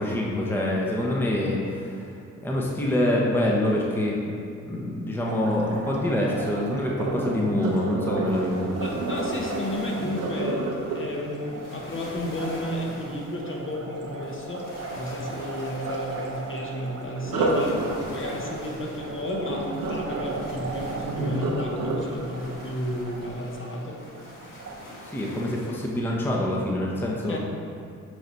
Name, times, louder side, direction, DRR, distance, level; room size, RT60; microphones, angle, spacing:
voice 1, 0.0-2.1 2.4-8.7 25.1-27.4, left 1 dB, 5° left, -3 dB, 0.8 m, -26 dB
Liquid, 5.2-24.8, right 4 dB, 45° right, 0.8 m, -39 dB
Sink (filling or washing), 6.8-12.8 17.2-24.2 24.7-25.1 25.5-25.6, right 2 dB, 80° right, 0.9 m, -31 dB
sound 1, 8.3-26.0, left 1 dB, 70° left, 1.3 m, -46 dB
voice 2, 8.8-14.7 15.0-17.8 18.1-24.0 27.3-27.4, left 1 dB, 35° left, -1 dB, 1.1 m, -32 dB
7.8 x 2.8 x 4.5 m, 2.7 s
supercardioid pair, 65°, 34 cm